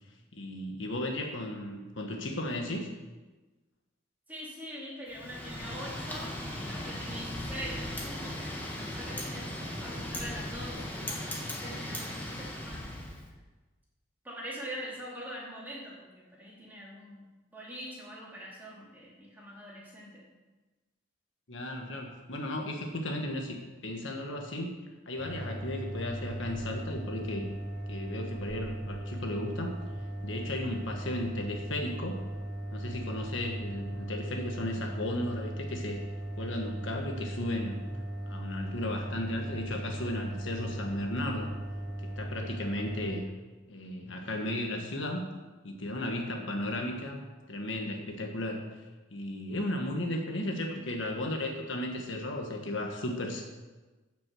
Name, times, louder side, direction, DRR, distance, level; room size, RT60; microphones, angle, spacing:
voice 1, 0.3-2.9 21.5-24.7 25.0-27.5 27.9-29.8 30.2-32.2 32.7-36.0 36.3-37.8 38.3-41.5 42.0-43.2 43.7-45.3 45.6-47.2 47.5-48.8 49.1-53.4, left 1 dB, 65° left, 2 dB, 1.5 m, -35 dB
voice 2, 4.3-13.2 14.2-17.2 17.5-20.2, equal, 10° right, -6 dB, 3.3 m, -43 dB
Wind, 5.1-13.2, left 1 dB, 10° left, 1.7 m, -38 dB
sound 1, 25.2-43.2, right 1 dB, 35° left, 2.5 m, -38 dB
11.0 x 6.1 x 7.6 m, 1.2 s
head